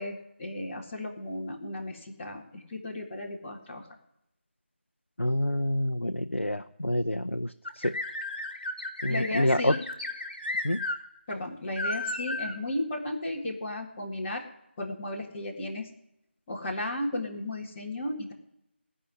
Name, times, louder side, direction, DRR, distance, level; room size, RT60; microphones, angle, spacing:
voice 1, 0.0-3.9 9.1-9.8 11.3-14.4 14.8-15.9 16.5-18.3, left 1 dB, 15° left, -6 dB, 1.8 m, -34 dB
voice 2, 5.2-8.0 9.0-9.7 10.6-10.8, left 1 dB, 85° left, 7 dB, 0.7 m, -27 dB
sound 1, 7.6-11.0 11.3-11.4 11.8-12.5, left 2 dB, 45° left, 2.2 m, -34 dB
16.5 x 5.6 x 9.5 m, 0.85 s
figure-of-eight pair, 165°, 7 cm